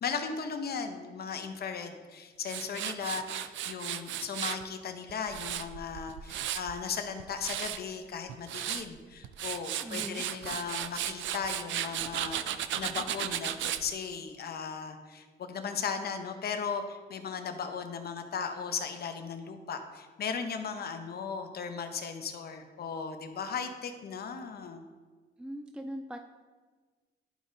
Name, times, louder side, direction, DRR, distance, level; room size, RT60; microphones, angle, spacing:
voice 1, 0.0-24.8, left 6 dB, 50° left, 6 dB, 0.8 m, -37 dB
Tools, 2.5-4.6 5.1-6.8 7.2-7.8 8.3-8.9 9.2-13.8, right 11 dB, 75° right, 0.4 m, -35 dB
voice 2, 9.8-10.2 25.4-26.2, right 1 dB, 5° right, 6 dB, 0.3 m, -40 dB
11.0 x 5.0 x 2.7 m, 1.4 s
cardioid pair, 90°, 20 cm